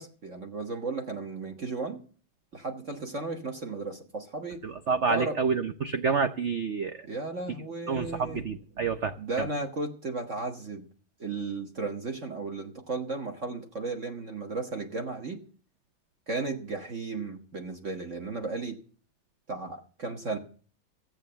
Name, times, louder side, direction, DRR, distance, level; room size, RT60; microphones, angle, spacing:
voice 1, 0.0-2.0 2.5-4.6 5.1-5.4 7.0-8.4 9.2-10.9 11.2-15.4 16.3-18.8 19.5-20.4, right 3 dB, 40° right, 4 dB, 1.5 m, -34 dB
voice 2, 4.6-7.1 7.9-9.5, right 5 dB, 90° right, 9 dB, 0.6 m, -28 dB
14.0 x 8.3 x 6.8 m, 0.43 s
omnidirectional pair, 2.3 m